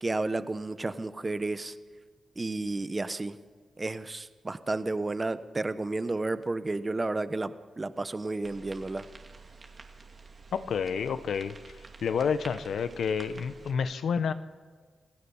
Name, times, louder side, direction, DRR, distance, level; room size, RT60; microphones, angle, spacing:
voice 1, 0.0-1.7 2.4-3.4 3.8-7.5 7.8-9.0, right 2 dB, 25° right, 12 dB, 1.0 m, -32 dB
sound 1, 8.4-13.7, right 4 dB, 40° right, 2.5 m, -49 dB
voice 2, 10.5-11.8 12.0-14.3, left 6 dB, 80° left, 12 dB, 0.9 m, -29 dB
27.5 x 16.5 x 7.2 m, 1.5 s
cardioid pair, 100°, 0 cm